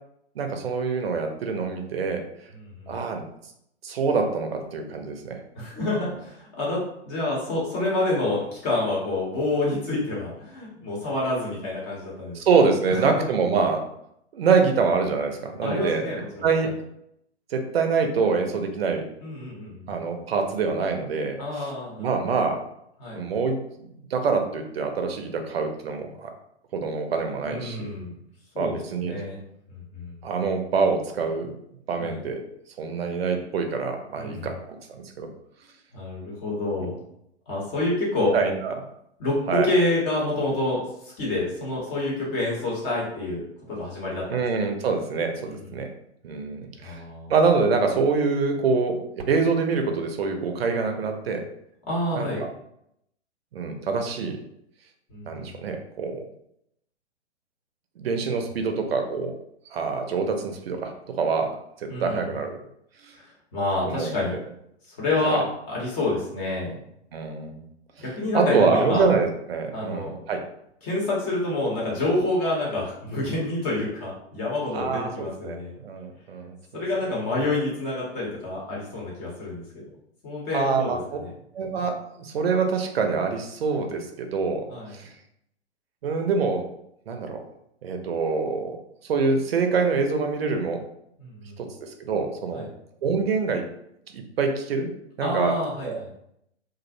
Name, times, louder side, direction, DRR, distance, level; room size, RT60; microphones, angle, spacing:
voice 1, 0.4-2.2 2.9-3.2 3.8-5.4 12.3-13.8 14.3-16.0 16.4-16.7 17.5-19.1 19.9-21.7 22.0-22.6 23.1-23.6 24.1-26.3 26.7-27.9 28.6-29.2 30.2-31.5 31.9-32.4 32.8-34.5 34.9-35.3 38.3-38.8 39.5-39.7 44.3-45.9 46.2-47.0 47.3-51.4 52.1-52.5 53.5-54.4 55.3-56.2 58.0-59.3 59.7-62.6 63.0-63.1 63.8-64.1 65.2-65.4 67.1-67.6 68.3-70.4 74.7-76.8 77.1-77.3 80.5-81.2 81.5-84.6 84.9-85.1 86.0-86.7 87.1-87.4 87.8-88.8 89.1-90.8 91.6-92.7 93.0-93.6 94.1-94.9 95.2-96.0, right 4 dB, 60° right, 5 dB, 0.5 m, -25 dB
voice 2, 2.6-3.0 5.5-6.8 7.0-12.4 13.0-13.3 15.6-16.7 19.2-19.9 21.4-22.1 23.0-23.2 27.4-28.1 28.5-28.8 29.0-29.4 29.7-30.1 32.0-32.2 34.2-34.5 35.9-36.9 37.5-38.3 39.2-43.4 43.7-44.4 45.4-45.7 46.8-47.3 51.9-52.4 55.1-55.5 61.9-62.4 63.1-63.2 63.5-64.4 65.0-66.8 68.0-69.1 69.7-70.1 70.8-75.7 76.7-79.6 80.2-81.3 84.7-85.0 91.2-91.6 92.5-92.7 95.2-96.1, left 2 dB, 25° left, -5 dB, 0.7 m, -28 dB
2.4 x 2.0 x 2.5 m, 0.76 s
figure-of-eight pair, 115°, 34 cm